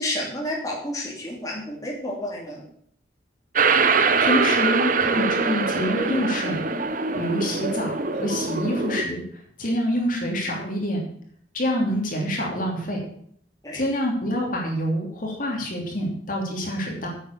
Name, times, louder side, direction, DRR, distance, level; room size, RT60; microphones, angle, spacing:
voice 1, 0.0-2.7 13.6-13.8, left 1 dB, 20° left, -3 dB, 2.8 m, -30 dB
sound 1, 3.6-9.0, right 4 dB, 45° right, 0.9 m, -23 dB
voice 2, 3.9-6.6 7.1-9.2 9.6-11.0 11.5-13.0 13.7-17.1, equal, 50° left, 0 dB, 2.9 m, -26 dB
9.6 x 7.8 x 6.8 m, 0.63 s
head